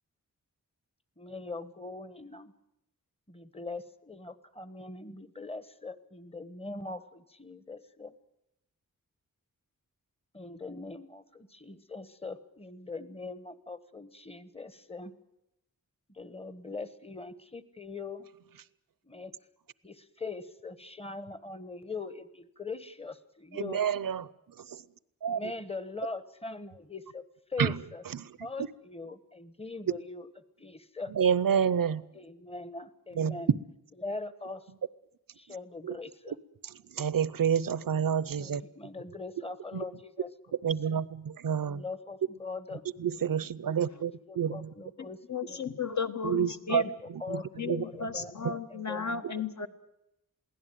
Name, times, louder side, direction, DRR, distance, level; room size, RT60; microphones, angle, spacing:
voice 1, 1.2-2.5 3.3-8.1 10.3-15.1 16.1-18.3 19.0-19.3 19.8-23.8 25.2-27.2 27.5-28.0 28.4-30.3 30.6-31.1 32.1-33.6 34.0-34.7 35.3-36.4 38.4-40.3 40.9-41.0 41.6-42.8 43.6-45.7 46.6-46.9 47.2-47.5 47.8-49.3, left 3 dB, 15° left, 14 dB, 1.2 m, -41 dB
voice 2, 23.5-24.3 24.6-24.8 25.2-25.4 27.6-27.8 31.2-32.0 33.2-33.4 35.8-36.0 36.3-36.4 36.6-38.6 39.7-39.8 40.6-41.8 43.0-44.7 46.2-46.8 47.1-47.4 47.7-47.8, right 8 dB, 75° right, 19 dB, 0.8 m, -29 dB
voice 3, 45.0-46.9 47.6-49.7, left 6 dB, 55° left, 8 dB, 1.5 m, -34 dB
22.5 x 16.5 x 9.3 m, 0.85 s
wide cardioid pair, 110°, 34 cm